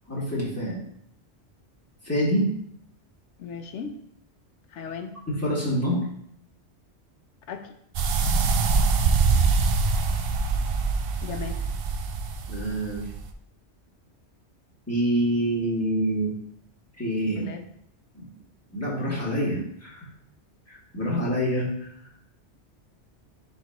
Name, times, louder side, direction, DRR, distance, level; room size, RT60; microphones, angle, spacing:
voice 1, 0.1-0.8 2.0-2.5 5.3-6.0 12.5-13.0 14.9-16.3 17.0-17.4 18.1-18.3 18.7-20.1 20.7-21.9, equal, 10° left, -7 dB, 2.5 m, -26 dB
voice 2, 3.4-4.0 4.7-5.2 7.5-7.7 11.2-11.6 17.3-17.7, left 5 dB, 80° left, 7 dB, 1.1 m, -36 dB
sound 1, 7.9-13.3, right 4 dB, 60° right, 0.7 m, -24 dB
10.5 x 4.1 x 3.0 m, 0.69 s
omnidirectional pair, 1.2 m